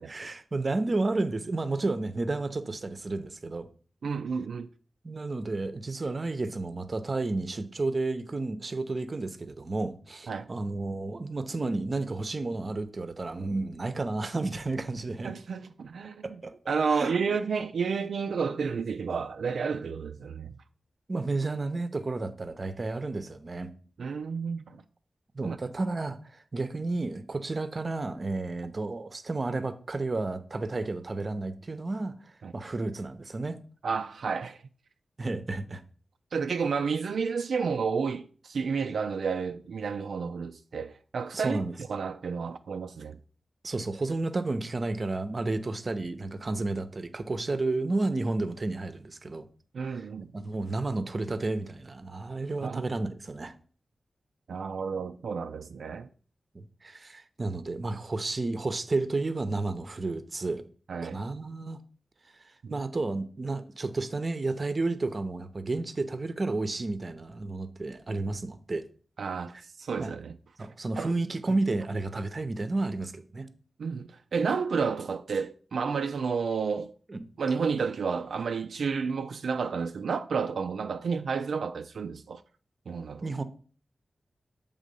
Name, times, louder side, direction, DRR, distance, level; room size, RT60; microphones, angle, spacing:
voice 1, 0.1-3.7 5.0-15.3 16.2-16.5 16.9-17.1 21.1-23.7 25.3-33.6 35.2-35.8 41.3-41.7 43.6-49.5 49.9-53.5 56.5-60.6 61.0-61.8 62.7-68.9 70.0-70.1 70.6-73.5 77.1-77.3 83.2-83.4, right 2 dB, 45° right, 0.7 m, -32 dB
voice 2, 4.0-4.7 10.3-10.5 15.2-16.2 16.7-20.5 24.0-24.8 25.4-25.6 32.4-32.5 33.8-34.6 36.3-41.6 41.9-43.2 49.7-50.5 52.6-52.8 54.5-56.1 60.9-61.2 62.6-62.8 69.2-70.4 71.0-71.1 73.8-76.9 77.4-82.4 82.9-83.3, right 5 dB, 90° right, 0.3 m, -31 dB
7.3 x 3.7 x 5.3 m
cardioid pair, 65°, 0 cm